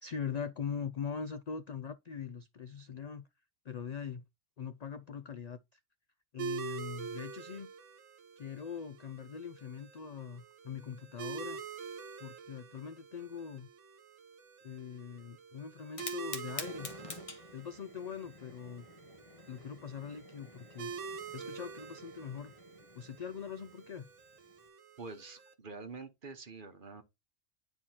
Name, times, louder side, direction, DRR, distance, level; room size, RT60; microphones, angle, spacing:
voice 1, 0.0-3.3 3.6-4.2 4.6-5.8 6.3-7.7 8.4-11.6 12.2-13.7 14.6-16.9 17.5-18.9 19.5-20.9 21.3-22.5 22.9-24.1, left 7 dB, 75° left, 0.3 m, -42 dB
sound 1, 6.4-25.5, right 5 dB, 70° right, 1.3 m, -46 dB
Fire, 15.8-24.7, left 3 dB, 25° left, 1.2 m, -49 dB
voice 2, 25.0-27.0, right 4 dB, 45° right, 1.2 m, -46 dB
9.9 x 4.6 x 2.9 m
omnidirectional pair, 1.3 m